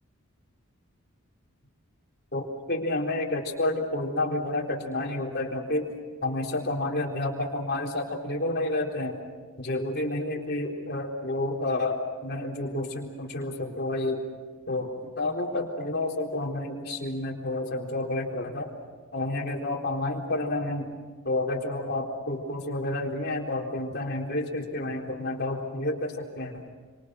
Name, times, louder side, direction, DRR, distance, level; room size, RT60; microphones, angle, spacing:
voice 1, 2.3-5.9 6.2-9.2 9.6-14.2 14.7-14.9 15.2-18.7 19.1-20.9 21.2-26.5, left 2 dB, 50° left, 0 dB, 3.9 m, -30 dB
28.0 x 26.0 x 6.4 m, 1.4 s
head